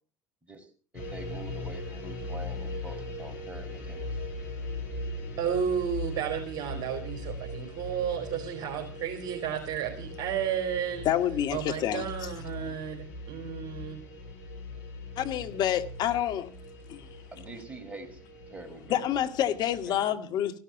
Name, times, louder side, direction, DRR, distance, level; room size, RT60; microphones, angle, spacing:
voice 1, 0.4-4.1 12.4-12.9 17.3-19.1 19.8-20.2, right 2 dB, 15° right, 5.0 m, -45 dB
sound 1, 0.9-20.0, left 2 dB, 65° left, 5.7 m, -40 dB
voice 2, 5.4-11.1 11.5-14.0, right 8 dB, 45° right, 3.9 m, -32 dB
voice 3, 11.0-12.3 15.2-16.5 16.9-17.1 18.9-20.6, left 11 dB, 45° left, 2.1 m, -28 dB
16.5 x 12.5 x 6.1 m
figure-of-eight pair, 75°, 10 cm